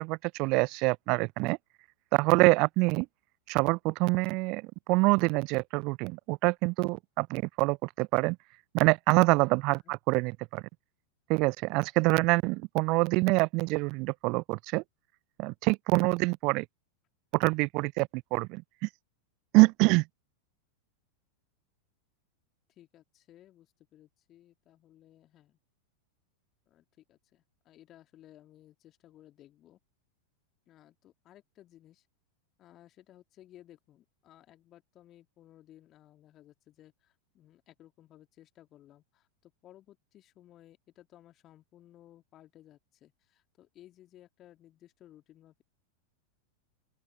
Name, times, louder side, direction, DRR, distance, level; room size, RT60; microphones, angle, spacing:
voice 1, 0.0-1.6 2.1-3.1 3.5-8.4 8.7-10.6 11.3-14.8 15.4-16.6 17.3-18.9 19.5-20.0, right 26 dB, 40° right, 0.4 m, -26 dB
voice 2, 9.5-9.9 22.7-25.6 26.7-29.8 30.7-32.1 32.6-45.6, left 13 dB, 30° left, 2.5 m, -58 dB
open air
figure-of-eight pair, 90°, 0 cm